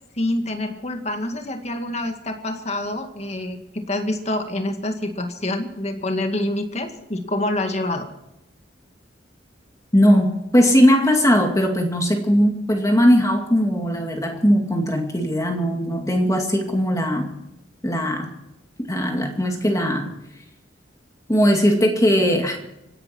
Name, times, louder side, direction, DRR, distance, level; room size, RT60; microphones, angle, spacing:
voice 1, 0.2-8.1, left 1 dB, 35° left, 5 dB, 2.1 m, -26 dB
voice 2, 9.9-17.3 17.8-18.3 18.9-20.1 21.3-22.6, equal, 15° left, 2 dB, 2.2 m, -19 dB
26.0 x 11.0 x 4.5 m, 0.86 s
head